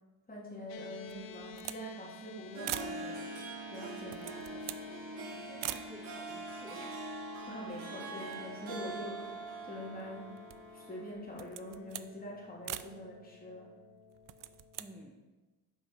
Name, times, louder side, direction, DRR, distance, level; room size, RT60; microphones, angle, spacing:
voice 1, 0.3-3.2 3.7-4.6 7.5-10.4 10.7-13.7, equal, 20° left, -4 dB, 2.9 m, -45 dB
sound 1, 0.7-15.1, left 1 dB, 80° left, 0.8 m, -52 dB
sound 2, 1.1-1.8 2.2-2.3 2.6-3.0 3.9-4.9 5.6-5.9 6.7-6.8 7.0-7.9 8.2-9.5 10.0-10.7 11.3-12.1 12.6-12.9 14.1-14.9, right 13 dB, 50° right, 0.4 m, -43 dB
Harp, 2.4-11.1, right 2 dB, 85° right, 1.5 m, -44 dB
voice 2, 5.2-7.2 14.8-15.2, right 1 dB, 5° right, -1 dB, 1.0 m, -52 dB
7.8 x 5.6 x 4.6 m, 1.2 s
cardioid pair, 85°, 45 cm